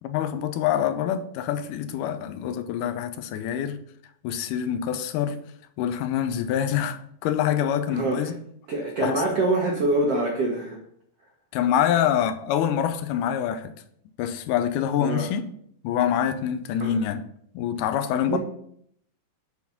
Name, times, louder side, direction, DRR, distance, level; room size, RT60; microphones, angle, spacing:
voice 1, 0.0-3.8 4.2-5.4 5.8-8.3 9.0-9.2 11.5-13.7 14.2-15.4 15.8-17.2 17.5-18.4, left 9 dB, 80° left, 1.9 m, -25 dB
voice 2, 7.9-8.3 8.7-10.8 15.0-15.3 16.8-17.0 18.3-18.4, right 2 dB, 70° right, 1.4 m, -25 dB
8.4 x 4.0 x 5.8 m
omnidirectional pair, 4.2 m